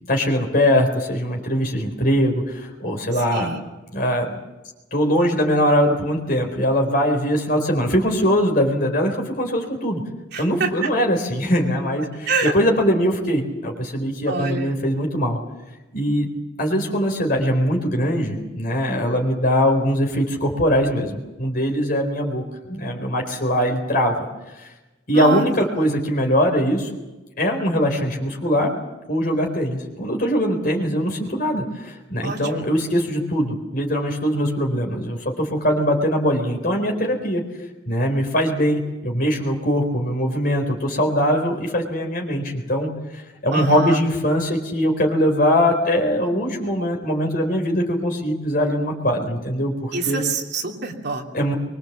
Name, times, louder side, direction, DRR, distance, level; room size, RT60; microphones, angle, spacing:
voice 1, 0.1-3.5 3.9-4.4 4.9-10.0 10.4-15.4 15.9-16.3 16.6-24.3 24.6-24.7 25.1-26.9 27.4-28.7 29.1-37.4 37.9-50.2 51.3-51.5, equal, 45° left, 2 dB, 4.2 m, -21 dB
voice 2, 3.3-3.7 10.3-10.7 12.3-12.5 14.3-14.7 25.1-25.5 32.2-32.6 43.5-44.0 49.9-51.2, right 3 dB, 55° right, 1 dB, 3.0 m, -25 dB
24.0 x 22.0 x 7.5 m, 1.1 s
head